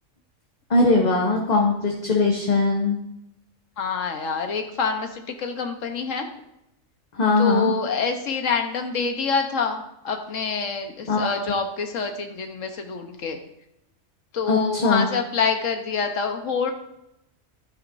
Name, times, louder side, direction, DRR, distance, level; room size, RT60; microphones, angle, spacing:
voice 1, 0.7-3.0 7.1-7.7 11.1-11.4 14.5-15.1, left 3 dB, 35° left, 0 dB, 1.0 m, -20 dB
voice 2, 3.8-6.2 7.4-13.4 14.3-16.7, left 5 dB, 80° left, 5 dB, 1.3 m, -26 dB
12.0 x 9.4 x 2.6 m, 0.82 s
omnidirectional pair, 1.3 m